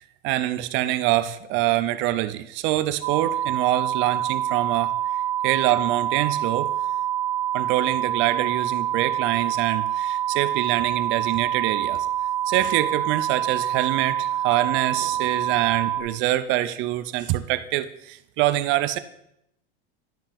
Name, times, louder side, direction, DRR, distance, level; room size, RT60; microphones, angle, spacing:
voice 1, 0.2-4.9 5.4-6.7 7.5-12.1 12.5-19.0, right 14 dB, 40° right, 13 dB, 0.4 m, -25 dB
sound 1, 3.0-16.0, right 11 dB, 60° right, 1.6 m, -26 dB
11.5 x 5.7 x 3.4 m, 0.77 s
supercardioid pair, 140°, 30 cm